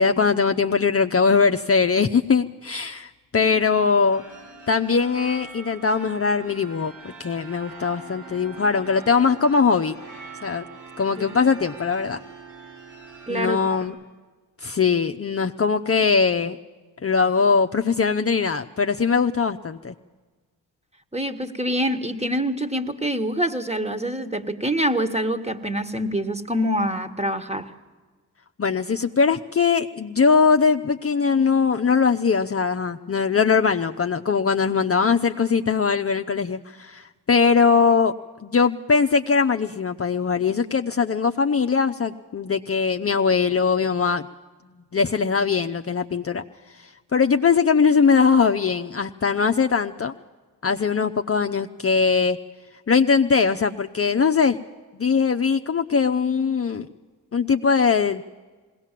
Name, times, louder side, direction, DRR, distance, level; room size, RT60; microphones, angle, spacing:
voice 1, 0.0-4.2 4.7-6.9 7.2-10.0 10.4-10.6 11.0-12.2 13.3-13.9 14.6-16.6 17.0-19.9 28.6-38.1 38.4-44.3 44.9-46.4 47.1-50.1 50.6-52.4 52.9-54.6 54.9-56.9 57.3-58.2, left 5 dB, 35° left, 6 dB, 0.7 m, -21 dB
sound 1, 4.1-13.9, right 4 dB, 80° right, 6.4 m, -43 dB
voice 2, 13.3-13.6 21.1-27.7, equal, 15° right, 9 dB, 1.6 m, -25 dB
20.5 x 17.5 x 7.5 m, 1.3 s
supercardioid pair, 45°, 41 cm